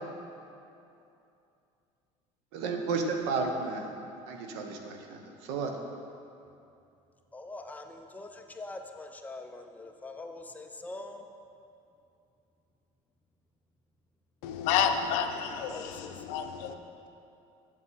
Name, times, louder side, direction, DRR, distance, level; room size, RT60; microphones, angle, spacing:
voice 1, 2.5-3.8 4.3-5.2 5.5-5.7, right 4 dB, 90° right, 3 dB, 0.9 m, -32 dB
voice 2, 7.3-11.2 15.6-16.2, left 2 dB, 10° left, 4 dB, 0.5 m, -43 dB
voice 3, 14.4-16.7, left 8 dB, 75° left, 6 dB, 0.6 m, -30 dB
7.4 x 7.4 x 4.1 m, 2.7 s
cardioid pair, 120°, 14 cm